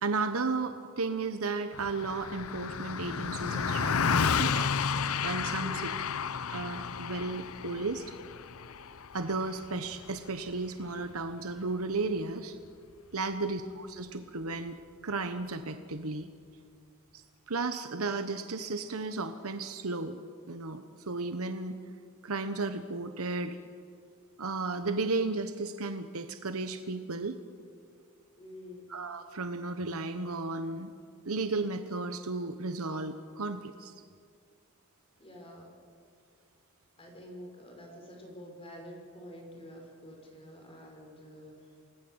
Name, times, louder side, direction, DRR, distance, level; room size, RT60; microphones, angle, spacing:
voice 1, 0.0-4.7 5.2-5.9 6.5-8.0 9.1-12.6 13.1-14.8 15.0-16.3 17.1-20.2 20.5-21.8 22.2-23.6 24.4-27.4 28.9-30.9 31.2-33.9, right 3 dB, 80° right, 8 dB, 1.1 m, -34 dB
Car passing by, 1.7-11.3, left 6 dB, 80° left, 0.7 m, -32 dB
voice 2, 5.6-6.0 13.3-13.6 28.4-28.9 35.2-35.7 37.0-41.7, equal, 25° left, 1 dB, 5.3 m, -48 dB
29.0 x 19.0 x 8.0 m, 2.2 s
head